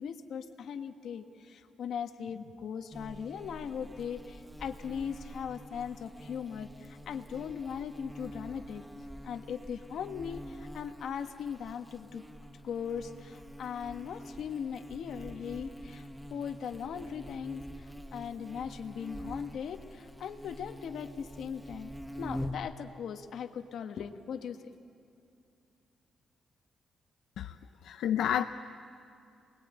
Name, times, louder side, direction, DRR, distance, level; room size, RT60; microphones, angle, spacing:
voice 1, 0.0-8.8 9.2-12.2 12.6-21.9 22.2-24.7, left 7 dB, 70° left, 7 dB, 1.4 m, -39 dB
Buzz, 2.9-22.7, equal, 5° right, 0.9 m, -45 dB
voice 2, 27.8-28.5, left 10 dB, 85° left, 7 dB, 0.6 m, -29 dB
28.0 x 20.5 x 9.0 m, 2.6 s
cardioid pair, 135°, 0 cm